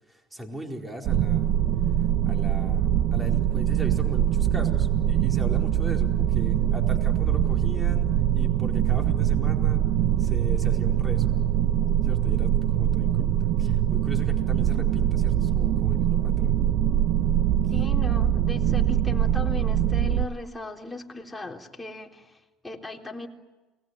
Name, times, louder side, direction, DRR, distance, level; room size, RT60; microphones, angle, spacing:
voice 1, 0.1-1.5 2.2-8.1 8.3-9.9 10.2-11.3 12.0-16.6, right 1 dB, 15° right, 2 dB, 4.6 m, -39 dB
sound 1, 1.0-20.3, right 11 dB, 65° right, 1.3 m, -23 dB
voice 2, 17.7-23.3, left 2 dB, 10° left, 0 dB, 3.6 m, -37 dB
29.0 x 20.5 x 9.5 m, 1.1 s
supercardioid pair, 95°, 0 cm